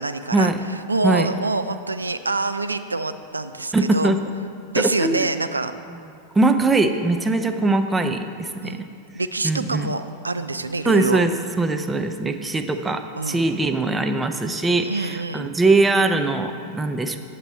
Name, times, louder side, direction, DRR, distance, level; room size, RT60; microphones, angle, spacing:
voice 1, 0.0-4.1 4.7-5.7 8.6-8.8 9.1-11.2 13.2-13.4 14.8-15.5, right 3 dB, 80° right, 10 dB, 0.3 m, -26 dB
voice 2, 3.7-4.2 4.8-5.3 5.9-6.0 6.3-8.9 9.4-9.9 10.9-17.2, right 2 dB, 10° right, 7 dB, 0.5 m, -21 dB
8.9 x 6.8 x 4.2 m, 2.4 s
figure-of-eight pair, 90°, 0 cm